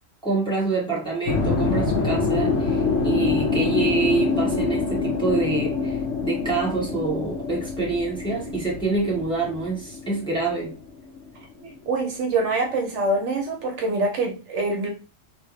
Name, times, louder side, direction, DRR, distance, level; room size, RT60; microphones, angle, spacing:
voice 1, 0.2-10.8, right 3 dB, 5° left, -7 dB, 1.4 m, -26 dB
sound 1, 1.3-11.4, left 4 dB, 80° left, 1.0 m, -25 dB
voice 2, 11.6-14.9, right 2 dB, 70° right, 2 dB, 1.0 m, -25 dB
3.4 x 2.8 x 3.0 m, 0.35 s
omnidirectional pair, 1.3 m